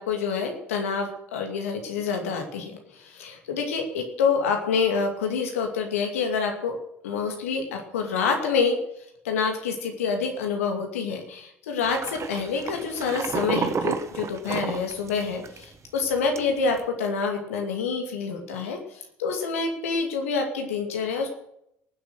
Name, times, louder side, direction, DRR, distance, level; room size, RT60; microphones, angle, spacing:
voice 1, 0.0-6.8 7.0-8.8 9.2-21.3, left 5 dB, 80° left, 3 dB, 2.4 m, -27 dB
sound 1, 11.8-15.6 16.0-16.1 16.4-16.8, right 6 dB, 40° right, 1.4 m, -30 dB
19.0 x 7.8 x 6.5 m, 0.76 s
figure-of-eight pair, 55°, 7 cm